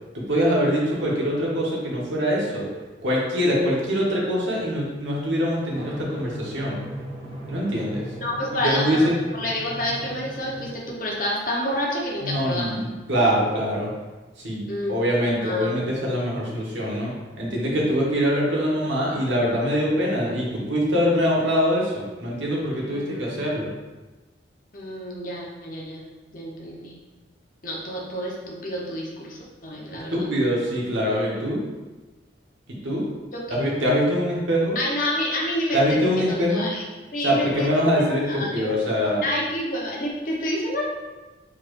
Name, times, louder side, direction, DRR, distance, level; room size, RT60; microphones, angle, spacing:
voice 1, 0.1-2.7 3.0-6.8 7.5-8.0 8.5-9.2 12.2-13.9 14.4-23.7 30.1-31.6 32.8-33.1 33.5-34.8 35.7-36.7 37.2-39.2, equal, 85° right, -4 dB, 1.2 m, -23 dB
Drum, 5.7-10.8, equal, 35° right, 0.9 m, -37 dB
voice 2, 8.2-9.1 9.3-12.7 14.7-15.1 15.4-15.9 22.9-23.4 24.7-26.1 26.3-26.9 27.6-30.3 33.3-33.6 34.7-36.8 37.1-38.7 39.2-40.8, equal, 45° left, -3 dB, 0.9 m, -29 dB
4.7 x 4.3 x 2.6 m, 1.2 s
head